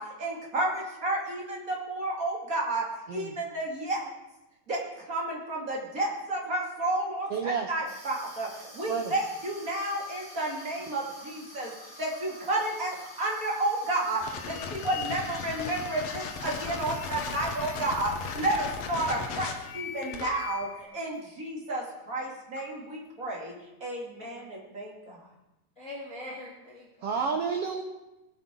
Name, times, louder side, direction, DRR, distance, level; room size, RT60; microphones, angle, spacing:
voice 1, 0.0-2.8 3.1-4.1 4.7-11.7 12.0-23.5 23.8-25.2, right 2 dB, 30° right, -3 dB, 2.4 m, -31 dB
voice 2, 7.3-7.7 8.9-9.1 27.0-27.8, right 6 dB, 80° right, 3 dB, 1.3 m, -30 dB
Water tap faucet / Sink (filling or washing), 7.9-20.6 20.9-21.2 21.9-22.0 22.2-23.1, equal, 10° right, 3.6 m, -49 dB
sound 1, 14.2-20.8, left 6 dB, 65° left, 1.8 m, -37 dB
voice 3, 14.5-15.0 19.0-19.2 25.8-27.1, left 1 dB, 30° left, -4 dB, 1.8 m, -44 dB
19.5 x 7.9 x 3.8 m, 0.97 s
omnidirectional pair, 3.7 m